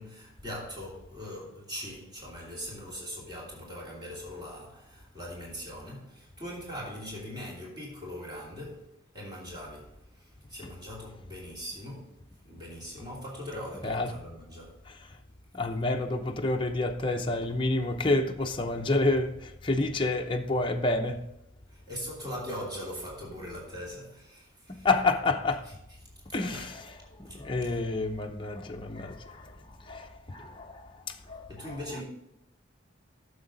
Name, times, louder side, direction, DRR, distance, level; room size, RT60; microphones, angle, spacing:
voice 1, 0.0-12.2 12.4-14.8 21.7-24.9 25.6-25.7 26.4-26.7 27.3-27.4 27.6-27.7 31.5-32.0, equal, 20° right, 2.8 m, -41 dB
voice 2, 15.5-21.3 24.7-25.7 26.3-26.6 27.2-29.5 29.8-31.7, left 2 dB, 25° left, 0.7 m, -29 dB
10.0 x 7.1 x 3.9 m
head